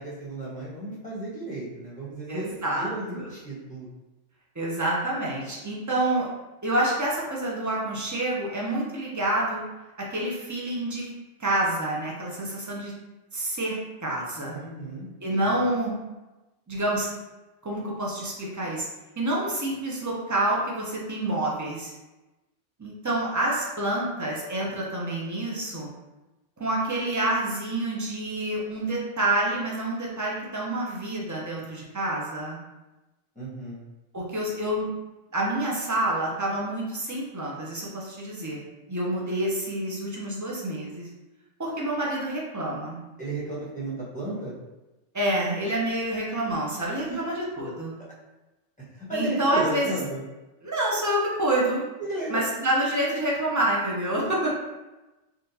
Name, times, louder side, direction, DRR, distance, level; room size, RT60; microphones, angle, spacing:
voice 1, 0.0-3.9 14.5-15.5 33.3-33.8 43.2-44.5 46.9-47.2 48.0-48.1 48.9-50.2 52.0-52.4 54.2-54.5, right 2 dB, 5° left, -8 dB, 1.0 m, -34 dB
voice 2, 2.3-3.3 4.6-6.3 6.6-9.6 10.0-11.1 11.4-12.9 13.3-14.6 15.2-16.0 16.7-17.1 17.6-18.9 19.2-21.9 22.8-25.9 26.6-32.6 34.1-34.9 35.3-38.6 38.9-41.1 41.6-43.0 45.1-47.9 49.1-50.0 50.6-51.8 52.3-54.5, right 1 dB, 25° right, -4 dB, 0.4 m, -28 dB
3.8 x 2.4 x 2.7 m, 1.1 s
omnidirectional pair, 1.3 m